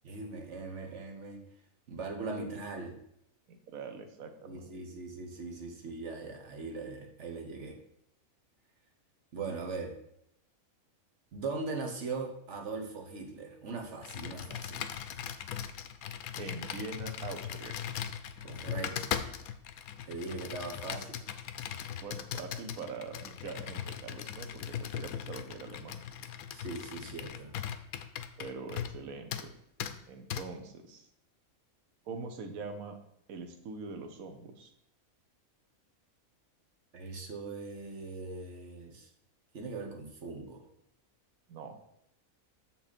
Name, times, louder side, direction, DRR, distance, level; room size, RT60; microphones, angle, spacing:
voice 1, 0.0-1.4 1.9-3.0 4.4-7.8 9.3-9.9 11.3-14.9 18.4-19.3 20.1-21.2 26.5-27.5 36.9-39.1 39.5-40.6, right 3 dB, 55° right, 2 dB, 1.4 m, -40 dB
voice 2, 3.5-4.8 16.4-17.8 22.0-26.0 28.4-29.5 30.1-31.1 32.1-33.0 33.3-34.7 41.5-41.8, right 4 dB, 75° right, 6 dB, 1.3 m, -43 dB
Computer keyboard, 14.0-29.0 29.3-29.5 29.8-29.9 30.3-30.4, left 9 dB, 85° left, 1.1 m, -39 dB
6.8 x 5.9 x 4.2 m, 0.76 s
omnidirectional pair, 1.5 m